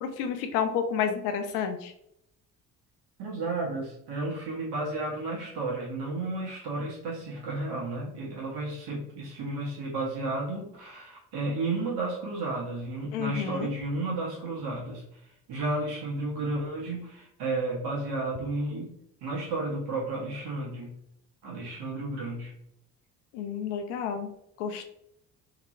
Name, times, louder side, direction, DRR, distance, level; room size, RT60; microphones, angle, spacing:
voice 1, 0.0-1.9 13.1-13.7 23.3-24.3 24.6-24.8, left 7 dB, 70° left, 6 dB, 0.6 m, -30 dB
voice 2, 3.2-15.2 15.5-18.9 19.2-21.0 21.4-22.5, right 2 dB, 60° right, -4 dB, 1.3 m, -32 dB
2.9 x 2.9 x 2.6 m, 0.76 s
hypercardioid pair, 50°, 44 cm